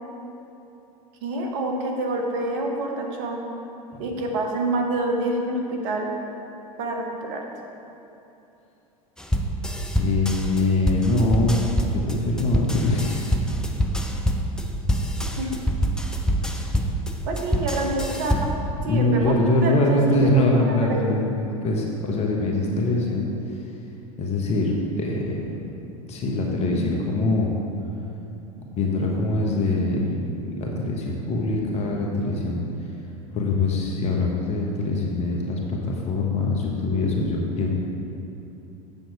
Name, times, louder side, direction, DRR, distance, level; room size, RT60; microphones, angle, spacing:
voice 1, 1.2-3.5 4.0-6.1 6.8-7.4 15.4-15.5 17.3-18.5 18.8-21.0, right 2 dB, 55° right, 2 dB, 1.4 m, -27 dB
sound 1, 9.2-18.7, equal, 5° left, 0.6 m, -25 dB
voice 2, 9.9-11.6 11.9-13.2 18.8-23.3 24.2-24.7 25.0-25.6 26.1-27.5 28.7-32.7 33.3-37.7, left 2 dB, 35° left, -1 dB, 1.2 m, -23 dB
7.7 x 7.1 x 4.7 m, 2.9 s
figure-of-eight pair, 80°, 18 cm